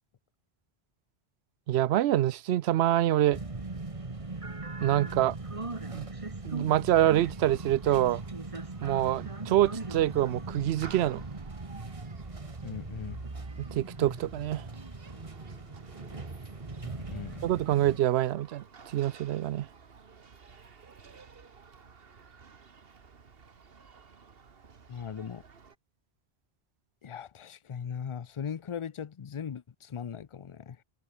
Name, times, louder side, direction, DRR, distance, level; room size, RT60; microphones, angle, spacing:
voice 1, 1.7-3.4 4.8-5.4 5.9-6.1 6.4-8.2 8.8-11.2 13.6-14.7 17.4-19.7, right 13 dB, 85° right, 0.8 m, -26 dB
sound 1, 3.3-18.0, right 3 dB, 30° right, 1.7 m, -39 dB
Human group actions, 7.1-25.8, right 5 dB, 65° right, 1.6 m, -54 dB
voice 2, 12.6-13.3 16.8-17.4 24.9-25.4 27.0-30.8, left 7 dB, 40° left, 0.5 m, -39 dB
omnidirectional pair, 1.0 m